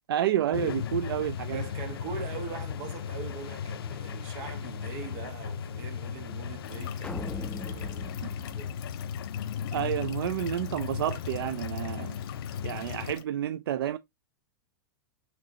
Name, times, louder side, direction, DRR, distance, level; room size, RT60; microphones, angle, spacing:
voice 1, 0.1-1.7 8.2-8.3 9.7-12.2 12.6-14.0, right 11 dB, 80° right, 0.4 m, -30 dB
sound 1, 0.5-13.1, left 8 dB, 85° left, 0.4 m, -36 dB
voice 2, 1.5-8.8, right 6 dB, 50° right, 1.3 m, -42 dB
sound 2, 6.6-13.2, left 13 dB, 55° left, 0.8 m, -47 dB
sound 3, 7.0-9.5, left 2 dB, 10° left, 0.5 m, -41 dB
5.0 x 3.2 x 2.8 m
hypercardioid pair, 120°, 12 cm